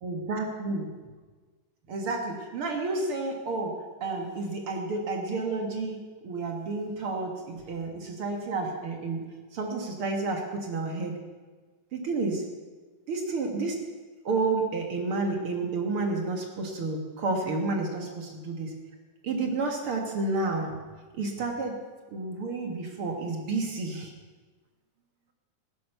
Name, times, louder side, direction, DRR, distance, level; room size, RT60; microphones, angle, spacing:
voice 1, 0.0-0.9 1.9-6.0 6.2-9.2 9.5-11.2 11.9-12.4 13.1-13.8 14.2-18.7 19.2-20.7 21.1-21.8 22.1-24.1, right 3 dB, 50° right, 2 dB, 2.1 m, -30 dB
16.0 x 9.5 x 6.8 m, 1.4 s
omnidirectional pair, 3.9 m